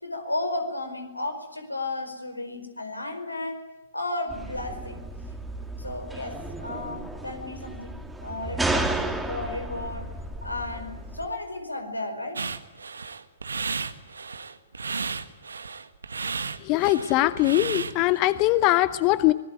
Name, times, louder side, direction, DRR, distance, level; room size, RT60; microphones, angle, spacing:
voice 1, 0.0-3.6 3.9-5.0 5.8-10.1 10.4-12.4, left 2 dB, 90° left, 7 dB, 4.8 m, -33 dB
sound 1, 4.3-11.3, right 2 dB, 5° right, 2.7 m, -33 dB
sound 2, 12.4-18.2, right 5 dB, 75° right, 1.6 m, -33 dB
voice 2, 16.6-19.3, left 17 dB, 35° left, 15 dB, 0.8 m, -21 dB
25.5 x 21.0 x 9.2 m, 1.1 s
figure-of-eight pair, 115°, 0 cm